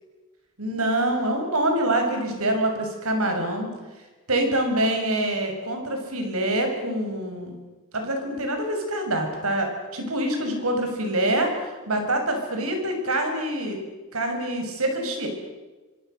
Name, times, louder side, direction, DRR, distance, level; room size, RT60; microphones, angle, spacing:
voice 1, 0.6-3.7 4.3-7.5 7.9-13.8 14.1-15.3, right 1 dB, 75° right, 4 dB, 6.5 m, -25 dB
26.0 x 25.0 x 6.8 m, 1.2 s
head